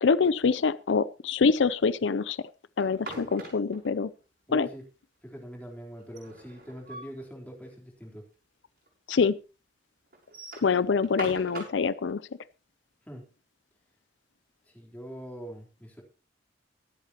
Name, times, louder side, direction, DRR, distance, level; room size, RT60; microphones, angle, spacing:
voice 1, 0.0-2.4 2.8-4.1 4.5-4.7 9.1-9.4 10.6-12.2, left 5 dB, 85° left, 0.5 m, -25 dB
sound 1, 2.8-3.9 6.0-7.2 7.6-7.7 8.0-8.1 8.9-9.0 10.1-11.9, right 2 dB, 60° right, 6.3 m, -42 dB
voice 2, 4.5-4.8 5.2-8.2 13.0-13.3 14.7-16.0, equal, 10° left, 3.8 m, -43 dB
23.5 x 8.3 x 3.0 m
head